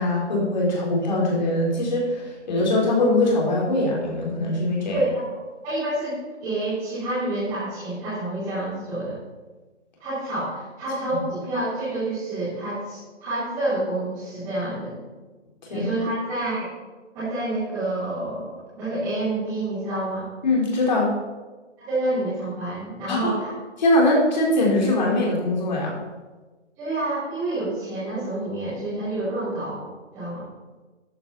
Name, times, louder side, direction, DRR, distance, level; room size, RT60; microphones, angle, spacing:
voice 1, 0.0-5.0 15.6-15.9 20.4-21.1 23.1-23.3 23.8-25.9, left 1 dB, 40° left, -3 dB, 3.9 m, -22 dB
voice 2, 4.9-5.4 5.6-9.2 10.0-15.0 15.7-16.7 17.1-20.2 21.8-23.5 26.8-29.9 30.1-30.5, right 2 dB, 10° right, -16 dB, 3.3 m, -28 dB
13.5 x 9.1 x 4.1 m, 1.3 s
hypercardioid pair, 180°, 36 cm